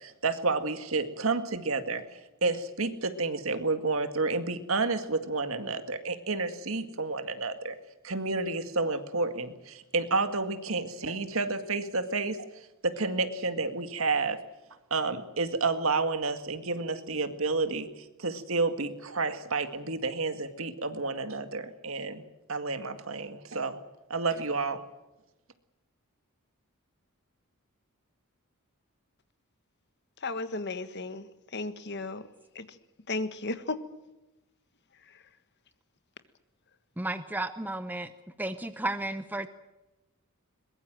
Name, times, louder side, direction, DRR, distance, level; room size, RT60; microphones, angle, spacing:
voice 1, 0.0-2.0 2.4-7.8 8.0-12.5 12.8-14.4 14.9-22.2 22.5-23.8 24.1-24.8, right 3 dB, 70° right, 2.0 m, -30 dB
voice 2, 30.2-32.3 32.5-32.8 33.1-33.8 35.0-35.2, left 3 dB, 50° left, 1.5 m, -35 dB
voice 3, 37.0-38.1 38.4-39.5, right 2 dB, 10° right, 0.8 m, -33 dB
22.5 x 21.5 x 7.7 m
head